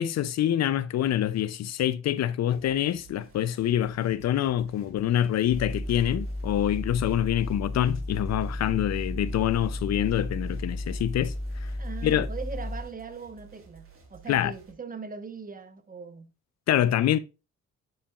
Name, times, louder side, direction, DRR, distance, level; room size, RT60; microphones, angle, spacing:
voice 1, 0.0-11.3 11.6-11.7 12.0-12.3 14.3-14.5 16.7-17.2, left 11 dB, 60° left, 0.5 m, -26 dB
sound 1, 2.5-14.7, right 6 dB, 45° right, 2.7 m, -53 dB
sound 2, 5.5-12.8, left 1 dB, 20° left, 1.0 m, -33 dB
voice 2, 11.8-16.3, right 5 dB, 30° right, 1.1 m, -40 dB
10.0 x 5.7 x 2.4 m
cardioid pair, 90°, 30 cm